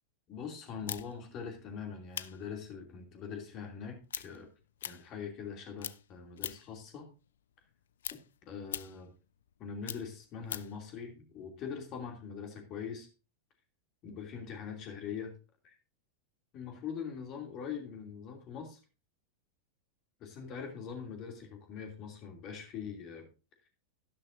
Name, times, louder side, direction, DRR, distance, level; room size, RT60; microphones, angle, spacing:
voice 1, 0.3-4.5 4.8-7.1 8.5-9.1 9.6-13.1 14.0-15.3 15.6-15.8 16.5-18.8 20.2-23.3, left 6 dB, 35° left, 4 dB, 2.8 m, -42 dB
sound 1, 0.9-5.5 5.8-6.8 7.2-10.8, left 10 dB, 60° left, 0.4 m, -43 dB
12.0 x 11.5 x 2.6 m, 0.31 s
figure-of-eight pair, 90°, 0 cm